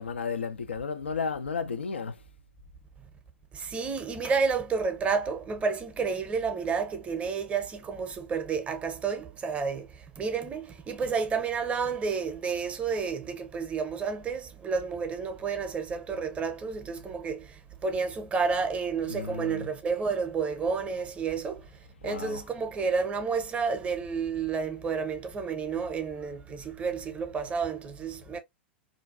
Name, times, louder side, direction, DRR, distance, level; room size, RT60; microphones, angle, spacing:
voice 1, 0.0-2.2 19.0-19.7 22.0-22.5, left 5 dB, 80° left, 0.3 m, -33 dB
voice 2, 3.5-28.4, right 5 dB, 20° right, 0.6 m, -30 dB
2.4 x 2.2 x 2.3 m
figure-of-eight pair, 95°, 6 cm